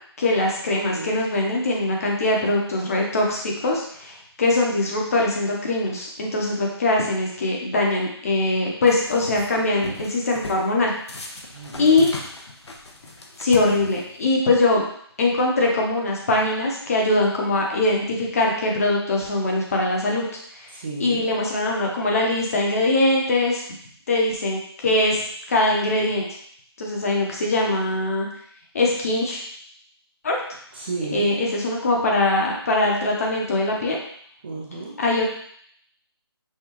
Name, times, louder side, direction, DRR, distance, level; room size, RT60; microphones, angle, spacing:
voice 1, 0.2-10.9 11.8-12.1 13.4-14.8 15.2-20.3 21.0-23.6 24.1-25.2 25.5-26.2 26.8-28.3 28.7-29.4 30.2-30.4 31.1-34.0 35.0-35.2, left 2 dB, 35° left, -1 dB, 0.8 m, -22 dB
voice 2, 0.8-1.2 11.5-12.0 20.7-21.3 30.7-31.3 34.4-34.9, right 3 dB, 25° right, -3 dB, 0.5 m, -33 dB
sound 1, 8.9-9.5 9.8-10.7 11.1-14.3, left 2 dB, 85° left, 0.8 m, -37 dB
5.6 x 2.3 x 2.9 m, 0.63 s
figure-of-eight pair, 165°, 14 cm